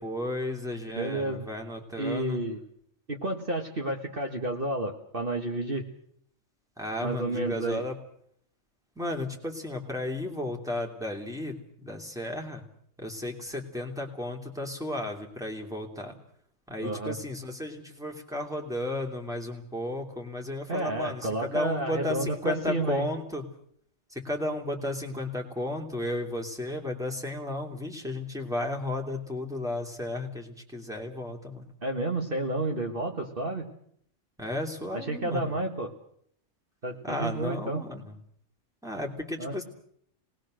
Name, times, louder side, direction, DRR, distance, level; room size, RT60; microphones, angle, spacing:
voice 1, 0.0-2.4 6.8-7.9 9.0-12.6 13.0-16.1 16.7-23.4 24.1-31.6 34.4-35.5 37.0-38.1 38.8-39.6, left 1 dB, 5° right, 1 dB, 2.9 m, -34 dB
voice 2, 0.9-1.4 2.0-2.6 3.1-5.9 7.0-7.8 16.8-17.2 20.7-23.1 31.8-33.7 34.9-35.9 36.8-37.9 39.4-39.5, right 2 dB, 45° right, 2 dB, 1.9 m, -31 dB
26.0 x 20.0 x 6.5 m, 0.66 s
omnidirectional pair, 1.3 m